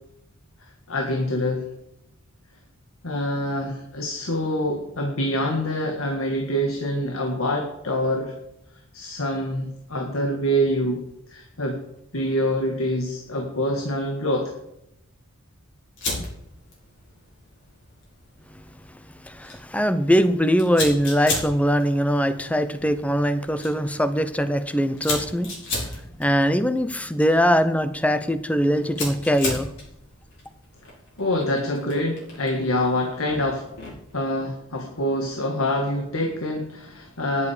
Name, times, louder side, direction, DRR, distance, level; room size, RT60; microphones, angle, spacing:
voice 1, 0.9-1.6 3.0-8.3 8.9-11.0 11.3-11.8 12.1-14.5 31.2-33.7 34.1-37.5, equal, 70° left, 2 dB, 1.8 m, -25 dB
Fire, 16.0-34.1, left 2 dB, 55° left, 5.2 m, -36 dB
voice 2, 19.2-25.5 26.2-29.7, equal, 5° left, 11 dB, 0.8 m, -21 dB
13.5 x 11.0 x 5.1 m, 0.80 s
head